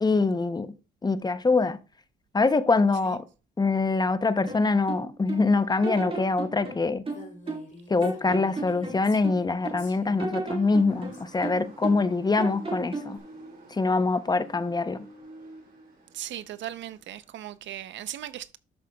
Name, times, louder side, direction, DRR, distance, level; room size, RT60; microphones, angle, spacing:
voice 1, 0.0-0.7 1.0-1.8 2.3-3.3 3.6-7.0 7.9-13.2 13.7-15.1, left 3 dB, 20° left, 0.6 m, -24 dB
sound 1, 4.5-5.5 5.8-7.7 8.0-9.8 10.2-12.1 12.4-13.2, right 3 dB, 25° right, 2.1 m, -34 dB
Female speech woman speaking, 7.1-11.2, left 3 dB, 40° left, 2.8 m, -48 dB
Motor vehicle (road) / Siren, 10.9-17.6, right 2 dB, 50° right, 3.2 m, -49 dB
voice 2, 16.1-18.6, right 12 dB, 70° right, 0.5 m, -38 dB
12.5 x 6.7 x 2.2 m
cardioid pair, 90°, 20 cm